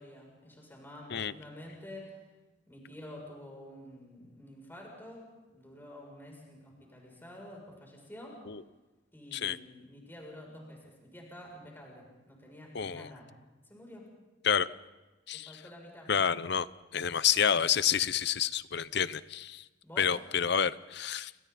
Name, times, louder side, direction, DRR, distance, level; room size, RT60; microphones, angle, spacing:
voice 1, 0.0-2.2 2.7-5.3 5.5-8.4 9.1-13.3 13.7-14.1 15.3-16.1 19.8-20.2, left 1 dB, 10° left, -2 dB, 7.4 m, -49 dB
voice 2, 12.7-13.1 14.4-14.7 15.3-15.5 16.1-16.7 16.9-19.6 20.0-21.3, left 8 dB, 65° left, 16 dB, 0.7 m, -29 dB
29.5 x 29.0 x 4.3 m, 1.2 s
head